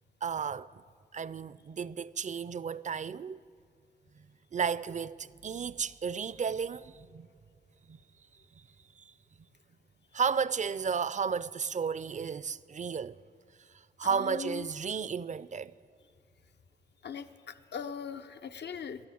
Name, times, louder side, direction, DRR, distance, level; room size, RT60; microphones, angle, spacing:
voice 1, 0.2-0.7 1.1-3.4 4.5-7.3 7.9-8.0 8.6-8.7 9.0-9.1 10.1-13.2 14.0-15.7, right 6 dB, 45° right, 0.4 m, -33 dB
voice 2, 14.0-14.7 17.0-19.0, left 7 dB, 75° left, 0.6 m, -40 dB
13.0 x 11.0 x 8.5 m
cardioid pair, 55°, 18 cm